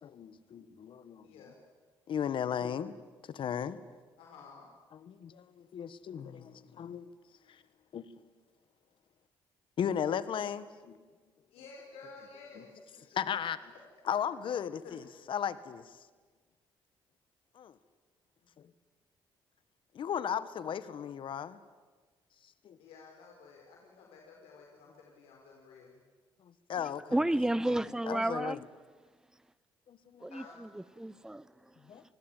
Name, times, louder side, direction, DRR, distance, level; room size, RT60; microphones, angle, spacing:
voice 1, 0.0-1.3 2.1-3.0 3.3-3.8 5.1-7.1 7.9-8.1 9.8-11.0 13.1-13.7 14.1-15.0 15.3-15.9 17.5-17.7 19.9-21.6 22.6-22.8 26.7-27.2 28.1-28.6 29.9-30.3 31.9-32.0, left 8 dB, 65° left, 1.5 m, -35 dB
voice 2, 1.2-1.6 4.2-4.7 11.5-13.1 13.7-13.8 15.2-15.3 18.4-18.5 22.8-26.0 30.3-30.6, left 4 dB, 90° left, 4.6 m, -53 dB
voice 3, 26.8-28.6 30.2-32.0, right 1 dB, 5° right, 0.8 m, -33 dB
28.0 x 20.0 x 9.2 m
cardioid pair, 75°, 10 cm